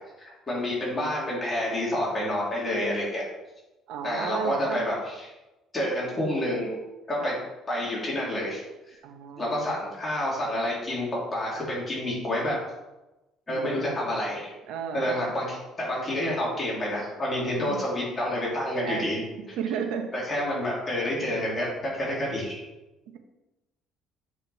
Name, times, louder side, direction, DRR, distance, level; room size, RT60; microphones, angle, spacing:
voice 1, 0.5-3.2 4.0-5.3 5.7-6.8 7.1-7.3 7.7-8.6 9.4-12.6 13.5-14.5 14.9-19.2 20.1-22.6, left 1 dB, 20° left, -5 dB, 3.0 m, -28 dB
voice 2, 3.9-4.9 7.2-7.3 9.0-9.7 13.5-13.9 14.7-15.2 17.5-17.8 18.8-20.1, right 7 dB, 80° right, 5 dB, 1.1 m, -34 dB
9.0 x 5.2 x 4.1 m, 1.0 s
cardioid pair, 125°, 0 cm